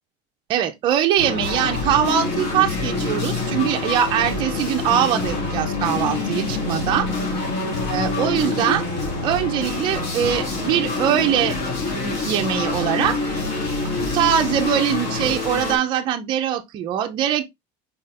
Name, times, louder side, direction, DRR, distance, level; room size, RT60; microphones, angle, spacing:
voice 1, 0.5-7.1 7.9-8.8 9.2-13.2 14.0-17.4, right 10 dB, 30° right, 0.5 m, -22 dB
sound 1, 1.2-15.8, left 3 dB, 50° left, 2.0 m, -26 dB
4.2 x 4.0 x 2.4 m
cardioid pair, 180°, 16 cm